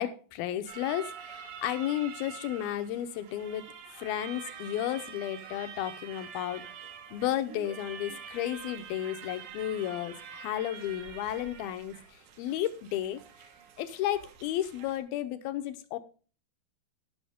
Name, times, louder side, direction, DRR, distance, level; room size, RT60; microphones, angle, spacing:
voice 1, 0.0-3.7 3.9-6.7 7.1-12.0 12.4-13.2 13.8-16.0, left 12 dB, 75° left, 10 dB, 2.4 m, -33 dB
sound 1, 0.7-15.0, right 7 dB, 85° right, 3.9 m, -46 dB
Laughter, 5.5-9.2, right 6 dB, 60° right, 2.5 m, -54 dB
17.5 x 6.3 x 3.6 m, 0.37 s
omnidirectional pair, 4.9 m